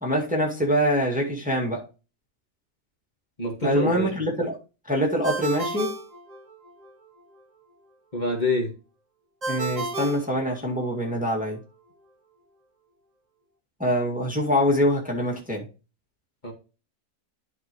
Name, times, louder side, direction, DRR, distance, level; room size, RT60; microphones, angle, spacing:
voice 1, 0.0-1.9 3.6-4.6 4.9-5.9 9.5-11.6 13.8-15.6, equal, 5° right, 2.1 m, -24 dB
voice 2, 3.4-4.1 8.1-8.7 16.4-16.5, left 1 dB, 30° left, 2.1 m, -26 dB
Ringtone, 5.2-6.9 9.4-11.1, right 3 dB, 30° right, 1.1 m, -32 dB
12.0 x 4.8 x 3.2 m
omnidirectional pair, 1.6 m